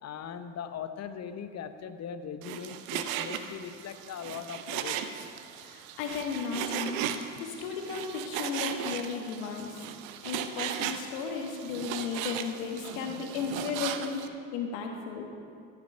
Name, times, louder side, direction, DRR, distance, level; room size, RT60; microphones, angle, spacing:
voice 1, 0.0-5.2, left 7 dB, 40° left, 10 dB, 0.8 m, -40 dB
Frying (food), 2.4-14.3, right 9 dB, 75° right, 0.7 m, -37 dB
voice 2, 5.6-7.0 7.4-9.8 10.2-14.2 14.5-15.3, left 6 dB, 75° left, 2 dB, 1.6 m, -35 dB
15.0 x 6.0 x 5.6 m, 2.3 s
hypercardioid pair, 65°, 41 cm